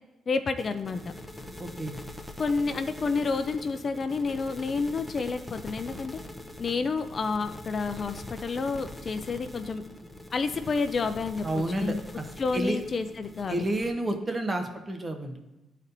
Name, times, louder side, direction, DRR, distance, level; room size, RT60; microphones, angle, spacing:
voice 1, 0.3-1.0 2.4-6.2 6.6-9.8 10.3-12.0 12.4-13.6, left 4 dB, 40° left, 9 dB, 0.4 m, -29 dB
sound 1, 0.6-13.9, left 1 dB, 5° left, 0.7 m, -43 dB
voice 2, 1.6-2.0 11.4-12.2 12.5-12.8 13.5-15.4, right 1 dB, 25° right, 4 dB, 1.0 m, -30 dB
11.0 x 4.2 x 2.6 m, 1.0 s
cardioid pair, 90°, 0 cm